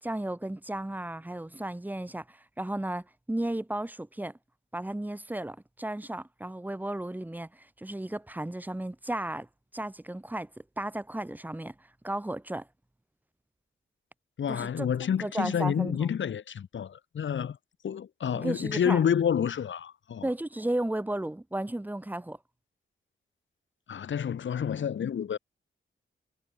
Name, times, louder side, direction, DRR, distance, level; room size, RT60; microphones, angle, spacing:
voice 1, 0.0-4.3 4.7-9.5 9.7-10.5 10.8-11.7 12.0-12.7 14.5-14.9 15.2-16.0 18.3-19.0 20.2-22.4, right 1 dB, 10° right, 3.9 m, -34 dB
voice 2, 14.4-17.6 17.8-20.3 23.9-25.4, left 8 dB, 70° left, 2.8 m, -29 dB
wide cardioid pair, 180°, 20 cm